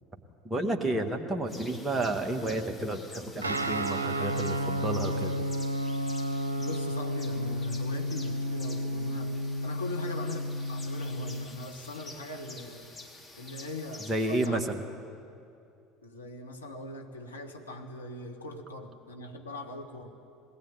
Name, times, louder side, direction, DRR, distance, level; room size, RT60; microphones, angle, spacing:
voice 1, 0.5-5.3 14.1-14.8, right 1 dB, 15° right, 3 dB, 1.9 m, -31 dB
sound 1, 1.5-14.5, left 2 dB, 20° left, 3.2 m, -49 dB
Guitar, 3.4-11.5, equal, 80° right, 0.8 m, -32 dB
voice 2, 6.6-12.9 13.3-14.7 16.0-20.1, left 1 dB, 85° left, 1 dB, 1.9 m, -41 dB
21.0 x 18.5 x 9.5 m, 2.5 s
figure-of-eight pair, 65°, 0 cm